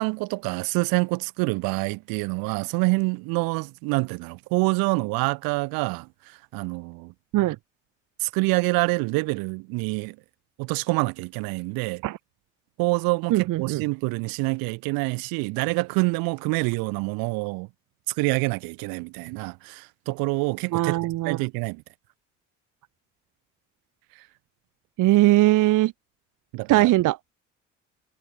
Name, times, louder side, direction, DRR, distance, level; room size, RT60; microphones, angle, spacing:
voice 1, 0.0-6.1 6.5-7.1 8.2-10.1 10.6-12.0 12.8-17.7 18.2-21.0 21.2-21.8 26.5-26.9, right 27 dB, 70° right, 1.4 m, -26 dB
voice 2, 13.3-13.8 20.7-21.4 25.0-25.9 26.7-27.3, right 17 dB, 55° right, 0.8 m, -20 dB
hypercardioid pair, 60°, 36 cm